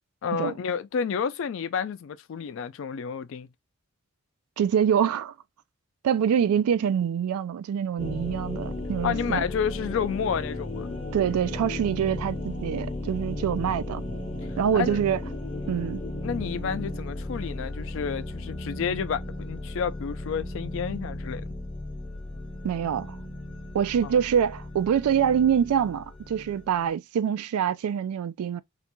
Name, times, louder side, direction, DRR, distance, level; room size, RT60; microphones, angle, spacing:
voice 1, 0.2-3.5 9.0-10.9 14.7-15.0 16.2-21.4 24.0-24.2, left 7 dB, 60° left, 0.3 m, -30 dB
voice 2, 4.6-5.3 6.0-9.4 11.1-14.0 14.6-15.2 15.7-16.0 22.6-23.2 23.7-28.6, right 8 dB, 90° right, 0.3 m, -25 dB
sound 1, 8.0-26.9, left 1 dB, 25° left, 0.6 m, -35 dB
2.4 x 2.2 x 2.9 m
head